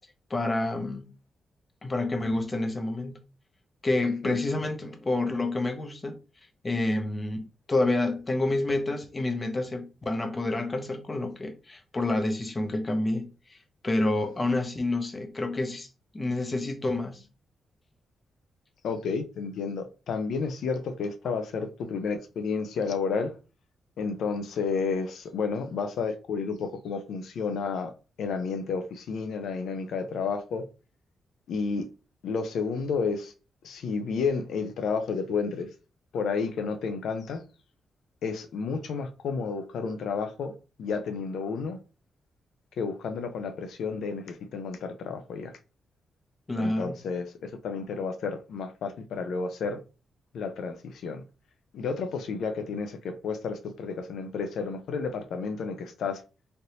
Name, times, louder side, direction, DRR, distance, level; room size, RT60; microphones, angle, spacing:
voice 1, 0.3-1.1 1.8-3.2 3.8-6.2 6.6-13.6 13.8-15.9 16.1-17.3 46.5-47.0, left 2 dB, 25° left, 0.6 m, -28 dB
voice 2, 18.8-23.4 24.0-27.9 28.2-30.6 31.5-31.9 32.2-33.3 33.6-35.7 36.1-37.4 38.2-41.8 42.8-45.5 46.6-49.8 50.3-51.2 51.7-56.2, left 5 dB, 85° left, 0.5 m, -31 dB
3.3 x 2.6 x 2.8 m
cardioid pair, 105°, 0 cm